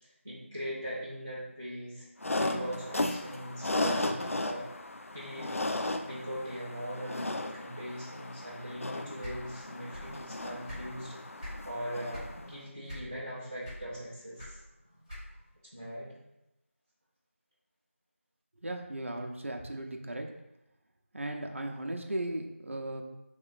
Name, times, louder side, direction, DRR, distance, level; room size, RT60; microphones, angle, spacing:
voice 1, 0.0-4.9 5.1-5.5 6.0-11.2 11.6-14.6 15.7-16.1, equal, 10° right, -12 dB, 0.5 m, -40 dB
sound 1, 2.2-12.5, left 2 dB, 75° left, 0.4 m, -35 dB
sound 2, 9.2-10.2 10.5-11.6 12.1-12.4 12.8-13.3 13.6-15.5, left 1 dB, 10° left, 1.0 m, -43 dB
voice 2, 18.6-20.3 21.1-23.0, right 1 dB, 65° right, 2 dB, 0.5 m, -36 dB
3.2 x 3.0 x 4.0 m, 0.91 s
figure-of-eight pair, 175°, 7 cm